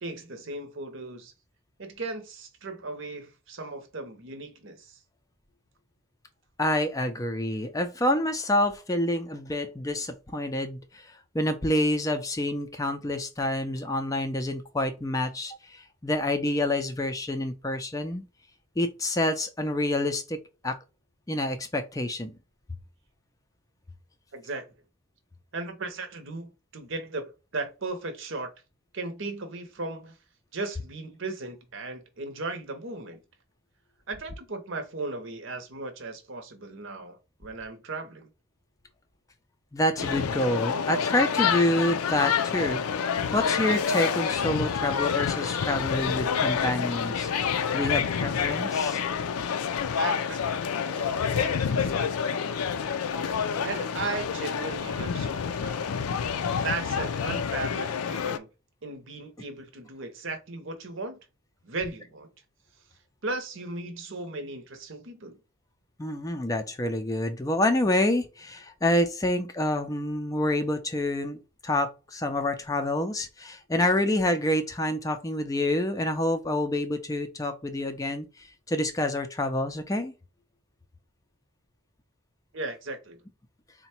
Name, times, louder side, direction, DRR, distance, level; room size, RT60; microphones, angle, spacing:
voice 1, 0.0-1.3 1.8-5.0 24.3-24.7 25.5-28.5 28.9-30.2 30.5-33.2 34.1-38.3 50.0-50.5 50.9-52.6 53.2-53.3 53.6-56.0 56.5-58.5 58.8-61.2 61.6-62.3 63.2-65.4 82.5-83.2, right 3 dB, 60° right, 0.8 m, -36 dB
voice 2, 6.6-18.3 18.8-20.4 20.6-20.8 21.3-22.3 39.7-43.0 43.3-47.3 47.7-49.0 66.0-80.1, left 1 dB, 15° left, 0.4 m, -27 dB
sound 1, 40.0-58.4, left 6 dB, 85° left, 0.4 m, -28 dB
3.9 x 2.2 x 4.3 m
head